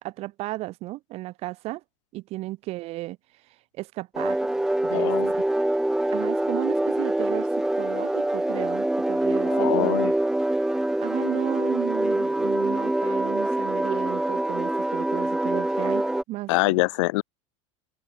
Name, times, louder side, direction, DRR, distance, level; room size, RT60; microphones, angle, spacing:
voice 1, 0.0-1.8 2.1-3.2 3.8-4.5 4.8-5.1 6.1-10.1 11.0-16.8, right 18 dB, 40° right, 2.3 m, -34 dB
sound 1, 4.1-16.2, right 1 dB, 5° right, 2.3 m, -25 dB
voice 2, 4.9-5.3 9.5-10.1 16.5-17.2, left 23 dB, 65° left, 0.8 m, -24 dB
open air
supercardioid pair, 165°, 17 cm